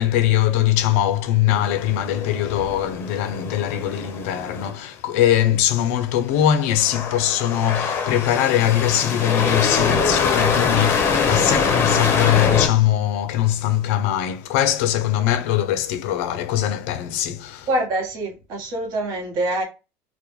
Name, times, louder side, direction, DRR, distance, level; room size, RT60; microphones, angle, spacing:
voice 1, 0.0-17.7, left 11 dB, 80° left, 0.4 m, -21 dB
sound 1, 1.5-4.7 6.7-12.7, left 5 dB, 30° left, 0.6 m, -23 dB
voice 2, 17.7-19.6, right 1 dB, 55° right, 1.0 m, -25 dB
2.2 x 2.1 x 3.0 m
supercardioid pair, 130°, 7 cm